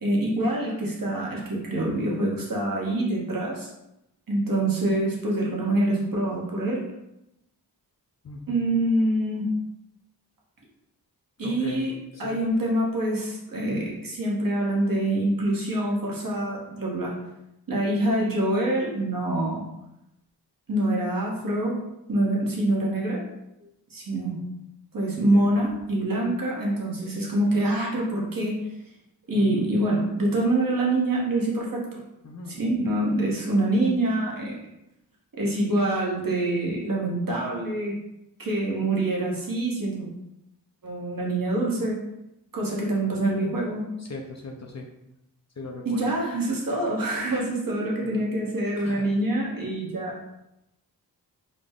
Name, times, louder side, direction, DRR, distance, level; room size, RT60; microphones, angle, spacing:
voice 1, 0.0-3.7 4.3-6.8 8.5-9.5 11.4-11.9 12.2-17.1 17.7-19.6 20.7-21.8 22.1-23.2 23.9-24.4 24.9-28.6 29.3-31.8 32.5-34.6 35.4-37.9 38.4-40.1 40.8-42.0 42.5-43.9 45.8-50.1, right 1 dB, 55° right, -3 dB, 1.3 m, -25 dB
voice 2, 8.2-8.6 11.4-11.9 12.2-12.3 25.2-25.5 29.3-29.7 32.2-32.5 44.0-44.8 45.6-46.1 48.1-48.2 48.8-49.1, left 3 dB, 40° left, 1 dB, 0.6 m, -39 dB
3.8 x 2.2 x 3.6 m, 0.87 s
cardioid pair, 50°, 41 cm